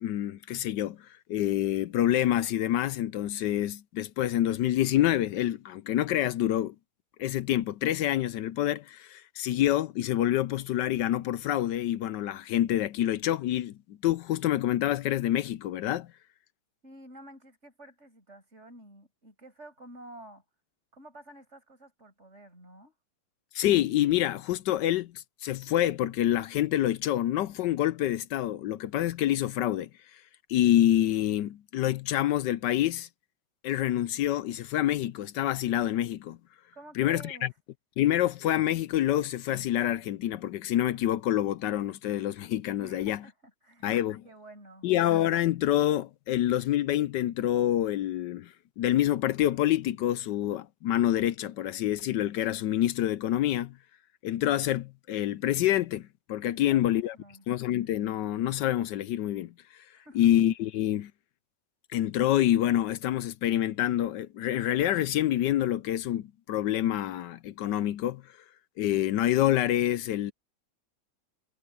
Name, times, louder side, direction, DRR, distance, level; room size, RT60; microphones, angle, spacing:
voice 1, 0.0-6.7 7.2-16.1 23.5-30.2 30.5-33.1 33.6-36.4 37.0-37.5 38.0-43.2 43.8-44.2 44.8-53.7 54.2-57.2 57.5-59.9 60.1-61.1 61.9-68.4 68.8-70.3, left 12 dB, 70° left, 1.1 m, -27 dB
voice 2, 16.8-20.4 20.9-22.9 36.7-37.5 42.8-44.0 44.2-44.9 56.5-57.4 59.9-60.2, right 1 dB, 35° right, 8.2 m, -50 dB
omnidirectional pair, 2.1 m